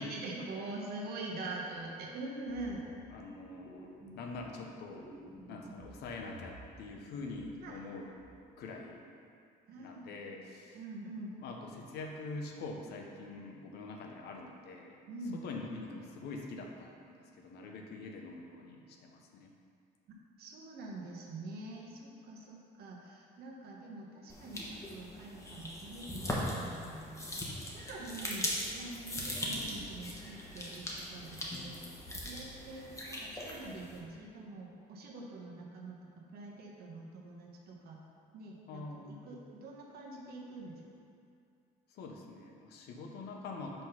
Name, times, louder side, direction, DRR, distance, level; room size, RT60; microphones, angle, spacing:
voice 1, 0.0-2.8 7.6-7.8 9.7-10.2 10.7-11.3 15.1-15.4 20.1-27.2 27.6-31.8 32.2-36.0 36.3-38.0 38.3-40.8, right 2 dB, 65° right, -1 dB, 1.1 m, -45 dB
sound 1, 2.4-3.2 3.5-4.5 4.8-6.9 7.1-7.8 8.2-8.4, right 1 dB, 20° right, 0.8 m, -54 dB
voice 2, 3.1-5.1 5.5-8.2 8.6-9.0 9.7-10.8 11.4-15.0 15.3-19.5 38.7-39.4 41.9-43.8, left 3 dB, 75° left, 1 dB, 0.8 m, -45 dB
sound 2, 24.3-34.0, left 1 dB, 20° left, 1.1 m, -40 dB
5.3 x 3.8 x 5.7 m, 2.4 s
cardioid pair, 110°, 17 cm